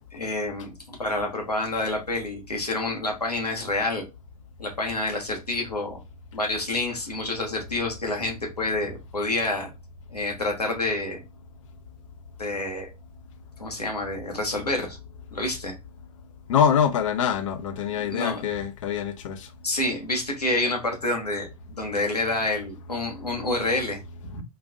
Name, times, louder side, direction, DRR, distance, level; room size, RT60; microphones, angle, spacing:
voice 1, 0.1-4.0 4.6-6.0 6.3-9.7 10.1-11.2 12.4-12.9 13.6-15.0 15.3-15.8 18.0-18.6 19.6-24.4, left 2 dB, 85° left, 1.1 m, -28 dB
voice 2, 16.5-19.5, left 8 dB, 55° left, 0.5 m, -24 dB
3.8 x 2.4 x 2.4 m
figure-of-eight pair, 100°, 20 cm